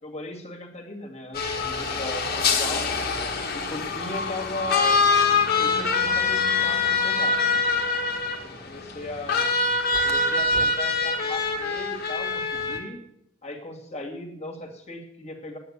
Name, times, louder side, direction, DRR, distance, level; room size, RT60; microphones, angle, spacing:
voice 1, 0.0-2.9 3.5-5.0 5.5-7.6 8.4-9.5 10.0-13.0 13.4-15.6, left 2 dB, 35° left, 2 dB, 2.4 m, -37 dB
sound 1, 1.3-12.8, left 4 dB, 50° left, 1.9 m, -24 dB
10.5 x 8.7 x 8.2 m, 0.75 s
head